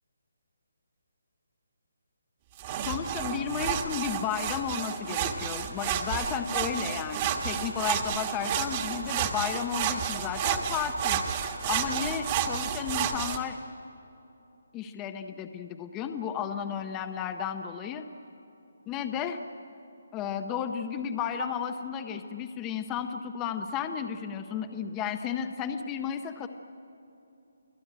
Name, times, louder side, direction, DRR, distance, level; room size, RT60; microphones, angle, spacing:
sound 1, 2.6-13.4, right 8 dB, 20° right, 1.3 m, -31 dB
voice 1, 2.8-11.2 11.7-13.6 14.7-18.0 18.9-19.4 20.1-26.5, left 8 dB, 10° left, 7 dB, 0.6 m, -33 dB
28.0 x 18.0 x 9.9 m, 2.9 s
hypercardioid pair, 175°, 0 cm